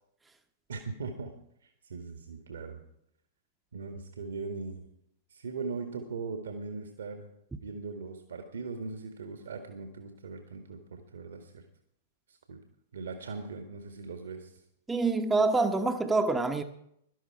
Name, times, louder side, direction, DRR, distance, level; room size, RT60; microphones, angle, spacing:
voice 1, 0.7-1.3 1.6-2.8 3.7-4.9 5.3-7.3 7.6-11.6 12.3-12.6 12.9-14.5, right 4 dB, 70° right, 1.8 m, -40 dB
voice 2, 14.9-16.6, right 3 dB, 10° right, 1.0 m, -26 dB
17.5 x 12.0 x 4.7 m
figure-of-eight pair, 100°, 0 cm